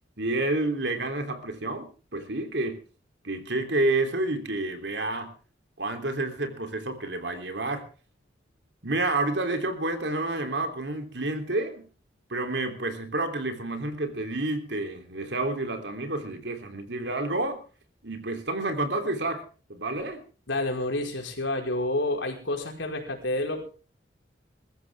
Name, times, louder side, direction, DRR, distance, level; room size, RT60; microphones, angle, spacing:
voice 1, 0.2-2.8 3.2-5.3 5.8-7.8 8.8-11.9 12.3-17.6 18.0-19.4 19.7-20.2, right 2 dB, 65° right, 6 dB, 3.3 m, -29 dB
voice 2, 20.5-23.6, left 2 dB, 85° left, 2 dB, 5.0 m, -29 dB
22.0 x 14.0 x 3.6 m, 0.37 s
head